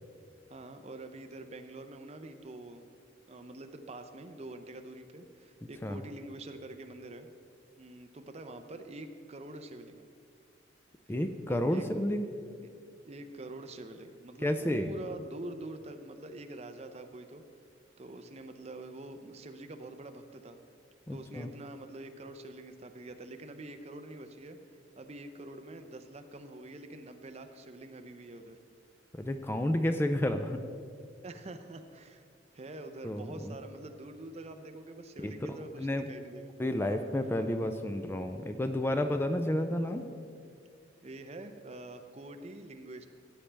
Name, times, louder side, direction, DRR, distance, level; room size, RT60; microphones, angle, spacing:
voice 1, 0.5-2.9 3.3-7.3 7.8-10.1 11.5-11.8 13.0-17.4 18.0-20.6 21.1-24.6 24.9-28.6 31.2-32.2 32.5-36.5 41.0-43.1, right 2 dB, 35° right, 7 dB, 0.6 m, -45 dB
voice 2, 11.1-12.3 14.4-14.9 21.1-21.5 29.2-30.6 33.0-33.6 35.2-35.3 35.8-36.1 36.6-40.1, left 1 dB, 10° left, 7 dB, 0.4 m, -31 dB
15.0 x 8.6 x 3.4 m, 2.2 s
head